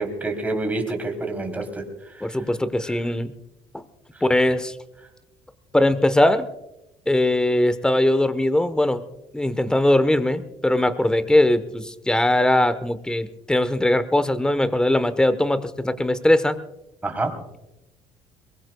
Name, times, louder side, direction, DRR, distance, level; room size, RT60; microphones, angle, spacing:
voice 1, 0.0-2.4 2.8-3.0 4.1-4.2 17.0-17.4, right 2 dB, 15° right, 3 dB, 3.3 m, -28 dB
voice 2, 2.2-3.3 3.7-3.8 4.2-4.7 5.7-6.5 7.1-9.0 9.3-16.6, left 1 dB, 5° left, 12 dB, 1.0 m, -20 dB
22.5 x 21.5 x 2.3 m, 0.93 s
cardioid pair, 120°, 12 cm